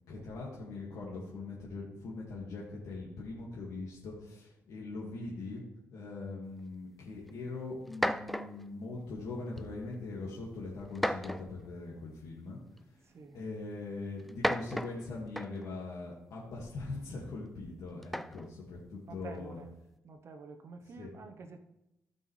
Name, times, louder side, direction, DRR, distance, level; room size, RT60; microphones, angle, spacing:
voice 1, 0.1-5.6 5.9-12.6 13.3-19.6 21.0-21.1, left 3 dB, 80° left, -4 dB, 1.9 m, -41 dB
sound 1, 7.3-7.4 7.9-8.7 9.6-9.9 11.0-11.7 12.8-12.9 14.2-15.7 18.0-18.5, equal, ahead, 0.3 m, -34 dB
voice 2, 13.0-13.5 19.1-19.7 20.0-21.6, right 4 dB, 50° right, 6 dB, 0.8 m, -49 dB
15.5 x 5.4 x 3.2 m, 0.89 s
cardioid pair, 110°, 6 cm